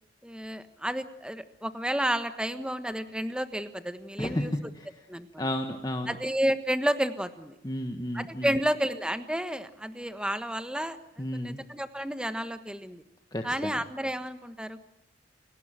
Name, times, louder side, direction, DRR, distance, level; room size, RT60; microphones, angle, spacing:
voice 1, 0.2-4.5 5.1-5.5 6.1-7.6 8.1-13.0 13.4-14.8, equal, 5° right, 10 dB, 1.3 m, -31 dB
voice 2, 4.2-4.9 5.4-6.2 7.6-8.6 11.2-11.6 13.3-13.7, left 1 dB, 20° left, 4 dB, 1.5 m, -32 dB
29.0 x 19.0 x 9.0 m, 0.85 s
head